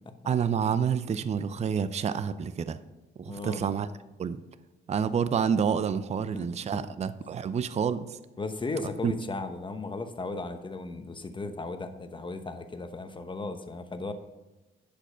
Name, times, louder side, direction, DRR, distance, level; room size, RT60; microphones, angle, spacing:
voice 1, 0.2-2.8 3.2-3.9 4.2-4.4 4.9-8.2 9.0-9.1, right 7 dB, 35° right, 13 dB, 0.5 m, -28 dB
voice 2, 3.3-3.7 6.3-6.5 6.7-6.8 8.4-14.1, left 3 dB, 25° left, 8 dB, 1.0 m, -36 dB
10.5 x 5.2 x 5.6 m, 1.1 s
cardioid pair, 90°, 20 cm